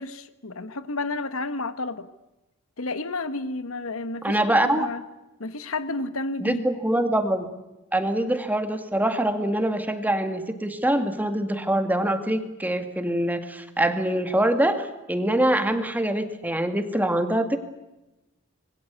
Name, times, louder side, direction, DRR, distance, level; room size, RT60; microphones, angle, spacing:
voice 1, 0.0-2.1 2.8-5.0 5.4-6.6, left 2 dB, 75° left, 12 dB, 1.4 m, -31 dB
voice 2, 4.2-4.9 6.4-7.5 7.9-17.6, right 1 dB, 10° right, 8 dB, 2.1 m, -24 dB
26.5 x 22.0 x 8.3 m, 1.0 s
head